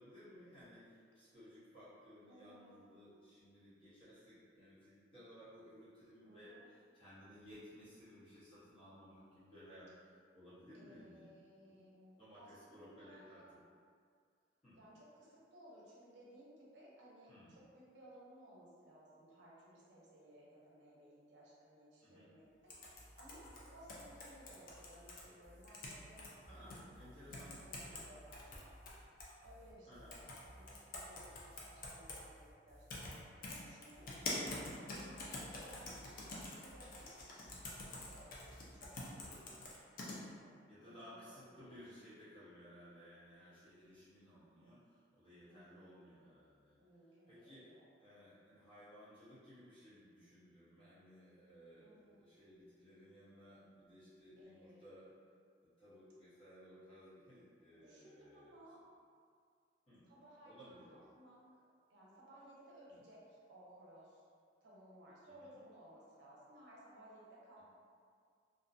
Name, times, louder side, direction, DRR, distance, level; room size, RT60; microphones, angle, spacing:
voice 1, 0.0-11.3 12.2-13.6 14.6-14.8 17.3-17.6 22.0-22.3 26.5-28.0 29.9-30.2 39.2-39.7 40.7-46.8 47.3-47.7 48.0-55.1 55.6-58.5 59.9-60.0 60.4-61.0 62.9-63.0 65.2-65.5, equal, 30° left, -12 dB, 0.9 m, -58 dB
voice 2, 2.2-2.9 6.2-6.7 10.7-13.5 14.7-28.8 29.4-34.1 34.5-37.1 37.7-38.4 38.7-39.4 39.9-41.8 45.5-46.0 46.8-47.9 51.8-52.2 54.4-54.9 57.8-58.8 60.0-61.4 61.9-64.2 64.6-67.7, right 1 dB, 65° right, -6 dB, 0.6 m, -60 dB
sound 1, 22.7-25.2 25.6-26.3 26.7-26.8 27.3-28.0 28.3-29.3 30.1-30.4 30.7-32.2 32.9-33.1 33.4-40.2, left 2 dB, 50° left, 0.4 m, -46 dB
sound 2, 22.9-38.8, equal, 15° right, 0.4 m, -60 dB
2.5 x 2.2 x 2.5 m, 2.1 s
head